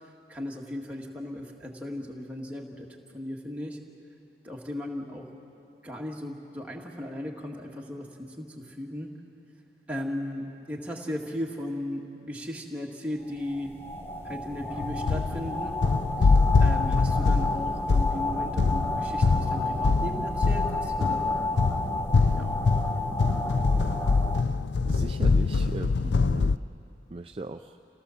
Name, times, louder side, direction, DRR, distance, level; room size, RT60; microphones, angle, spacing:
voice 1, 0.3-2.9 3.1-3.8 4.4-5.3 5.8-9.1 9.9-13.8 14.2-15.8 16.2-16.3 16.6-21.5 22.3-22.6, left 1 dB, 10° right, -2 dB, 1.9 m, -36 dB
sound 1, 13.3-24.4, left 2 dB, 10° left, 0.9 m, -31 dB
sound 2, 14.8-26.6, left 4 dB, 70° left, 0.4 m, -24 dB
voice 2, 24.8-26.6 27.1-27.8, right 2 dB, 30° right, 6 dB, 0.4 m, -38 dB
28.0 x 16.5 x 7.1 m, 2.8 s
head